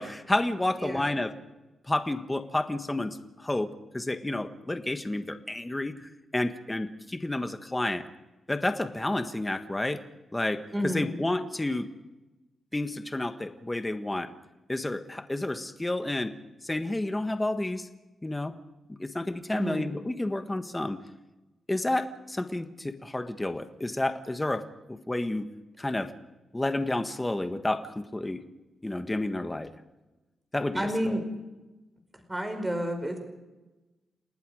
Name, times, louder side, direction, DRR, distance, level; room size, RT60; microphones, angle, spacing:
voice 1, 0.0-1.3 1.9-5.9 6.3-8.0 8.5-10.0 10.3-10.6 10.9-11.9 12.7-14.3 14.7-16.3 16.6-17.9 18.2-18.6 19.0-21.0 21.7-25.5 25.8-26.1 26.5-28.4 28.8-29.7 30.5-30.9, left 1 dB, 15° left, 8 dB, 1.5 m, -30 dB
voice 2, 0.8-1.2 10.7-11.2 19.5-19.9 30.7-31.2 32.3-33.2, equal, 15° right, 5 dB, 4.9 m, -30 dB
29.5 x 19.0 x 5.0 m, 1.1 s
wide cardioid pair, 125°, 0 cm